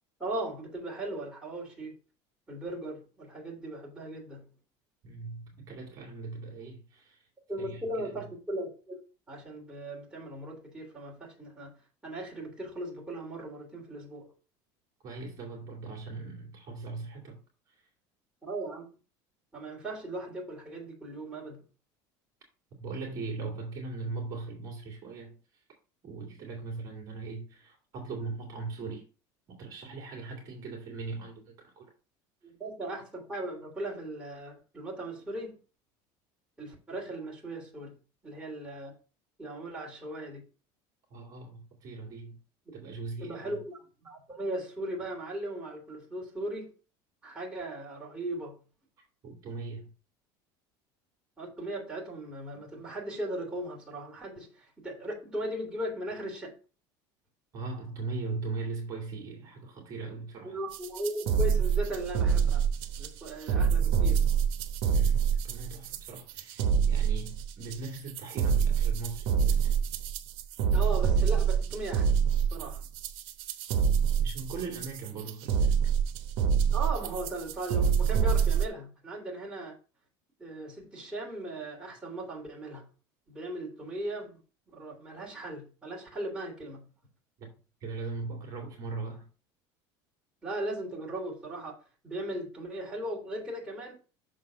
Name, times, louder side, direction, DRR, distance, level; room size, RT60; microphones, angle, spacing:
voice 1, 0.2-1.9 2.5-4.4 7.5-9.0 9.3-11.7 12.0-14.3 18.4-18.9 19.5-21.6 32.4-35.6 36.6-37.9 38.2-38.9 39.4-40.4 43.2-46.7 47.2-48.5 51.4-56.5 60.4-62.6 63.0-64.2 70.7-72.2 72.5-72.9 76.7-79.7 80.4-82.8 83.3-84.4 84.7-86.8 90.4-91.7 92.0-93.9, right 1 dB, 10° right, 2.6 m, -38 dB
voice 2, 5.0-7.3 7.6-8.2 15.0-17.4 17.7-17.9 22.8-25.4 26.0-29.1 29.5-31.9 41.1-42.4 42.7-43.6 49.2-49.9 57.5-60.6 64.9-69.8 74.2-75.8 87.4-87.5 87.8-89.3, right 3 dB, 35° right, 2.1 m, -39 dB
sound 1, 60.7-78.7, right 7 dB, 60° right, 1.0 m, -26 dB
6.4 x 4.0 x 6.1 m
cardioid pair, 155°, 10 cm